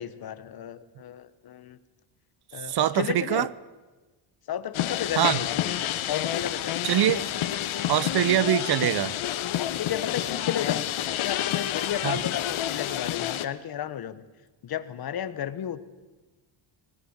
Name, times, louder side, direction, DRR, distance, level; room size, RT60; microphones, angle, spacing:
voice 1, 0.0-1.8 2.5-3.5 4.5-5.8 6.1-6.8 7.2-7.4 9.6-10.8 11.1-14.2 14.6-15.8, left 10 dB, 50° left, 1.1 m, -33 dB
voice 2, 2.6-3.5 5.2-5.4 6.8-7.2 7.9-9.2 12.0-12.2, right 12 dB, 55° right, 0.7 m, -23 dB
sound 1, 4.7-13.5, left 12 dB, 90° left, 1.3 m, -29 dB
23.5 x 19.5 x 7.2 m
cardioid pair, 170°, 47 cm